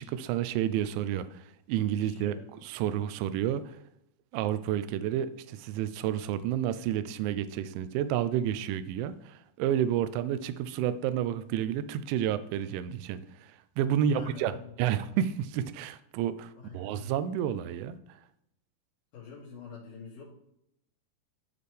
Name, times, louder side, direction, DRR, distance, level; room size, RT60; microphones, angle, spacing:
voice 1, 0.0-3.8 4.3-13.2 13.8-18.0, right 10 dB, 85° right, 13 dB, 2.9 m, -30 dB
voice 2, 2.0-2.5 14.0-14.7 16.5-17.1 19.1-20.3, left 6 dB, 60° left, -7 dB, 3.5 m, -46 dB
12.0 x 4.3 x 3.3 m, 0.79 s
omnidirectional pair, 5.3 m